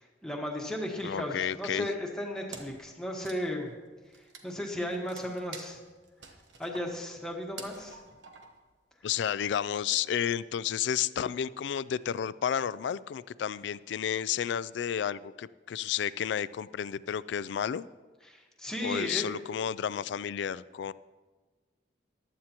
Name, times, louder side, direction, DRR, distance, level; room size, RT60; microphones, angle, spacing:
voice 1, 0.0-3.7 4.2-5.8 6.6-8.0 18.3-19.3, left 1 dB, 5° left, -1 dB, 1.3 m, -35 dB
voice 2, 1.0-1.9 9.0-17.9 18.8-20.9, left 9 dB, 65° left, 18 dB, 0.3 m, -31 dB
Wood, 2.5-2.9 3.1-8.7, right 4 dB, 70° right, 1.2 m, -48 dB
15.0 x 11.0 x 2.9 m, 1.3 s
head